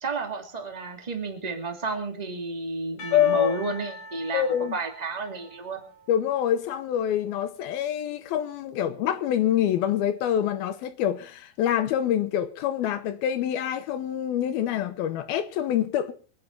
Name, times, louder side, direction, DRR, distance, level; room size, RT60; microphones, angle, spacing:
voice 1, 0.0-4.5 4.7-5.8, right 3 dB, 15° right, 1.7 m, -32 dB
Percussion, 3.0-6.9, equal, 50° left, 2.9 m, -44 dB
voice 2, 3.1-3.6 4.3-4.8 6.1-16.1, left 10 dB, 75° left, 2.8 m, -26 dB
24.5 x 9.5 x 4.5 m
omnidirectional pair, 4.5 m